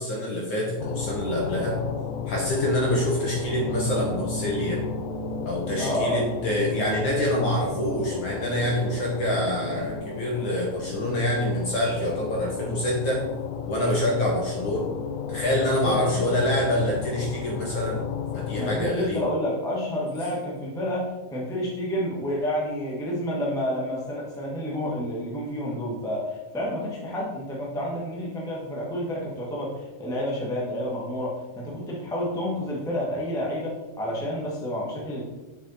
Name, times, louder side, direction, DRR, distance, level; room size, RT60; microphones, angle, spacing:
voice 1, 0.0-1.8 2.3-4.8 5.4-13.2 13.7-14.9 15.3-18.1 18.3-19.2, left 1 dB, 55° left, -2 dB, 1.4 m, -26 dB
sound 1, 0.8-18.9, left 8 dB, 85° left, 2.0 m, -33 dB
sound 2, 3.5-10.0, right 8 dB, 70° right, 1.4 m, -39 dB
voice 2, 5.8-6.3 15.7-16.2 18.6-35.2, left 1 dB, 5° left, -4 dB, 0.4 m, -29 dB
6.3 x 5.5 x 4.2 m, 1.1 s
omnidirectional pair, 3.3 m